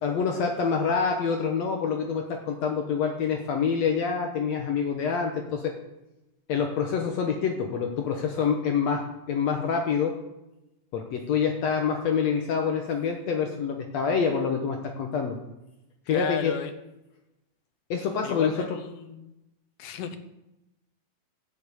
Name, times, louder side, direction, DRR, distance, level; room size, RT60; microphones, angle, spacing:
voice 1, 0.0-5.7 6.5-10.1 10.9-15.4 16.1-16.6 17.9-18.8, left 6 dB, 65° left, 3 dB, 2.0 m, -26 dB
voice 2, 16.1-16.7 18.2-19.3 19.8-20.2, left 8 dB, 85° left, 8 dB, 2.6 m, -34 dB
11.0 x 6.8 x 8.3 m, 0.92 s
omnidirectional pair, 3.7 m